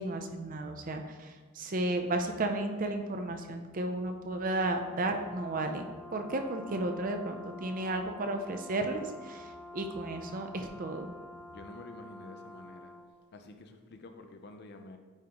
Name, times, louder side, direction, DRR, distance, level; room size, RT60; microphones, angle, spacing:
voice 1, 0.0-5.9 6.1-11.1, right 2 dB, 40° right, 5 dB, 0.5 m, -33 dB
Brass instrument, 4.4-13.1, left 1 dB, 15° left, 1.0 m, -48 dB
voice 2, 11.5-12.9 13.3-15.0, left 2 dB, 50° left, 6 dB, 0.5 m, -49 dB
8.8 x 3.6 x 2.9 m, 1.4 s
head